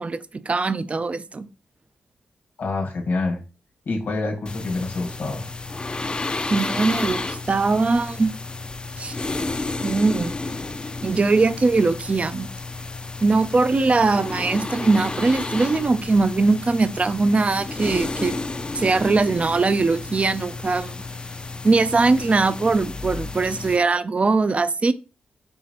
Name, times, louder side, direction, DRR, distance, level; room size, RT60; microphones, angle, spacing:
voice 1, 0.0-1.5 6.5-8.3 9.0-9.2 9.8-10.3 11.0-12.5 13.2-18.4 18.7-21.0 21.6-24.9, right 3 dB, 40° right, 0.4 m, -21 dB
voice 2, 2.6-3.4 3.8-5.5, left 3 dB, 70° left, 1.4 m, -26 dB
sound 1, 4.5-23.8, left 3 dB, 30° left, 0.4 m, -32 dB
5.5 x 2.8 x 2.9 m
cardioid pair, 50°, 3 cm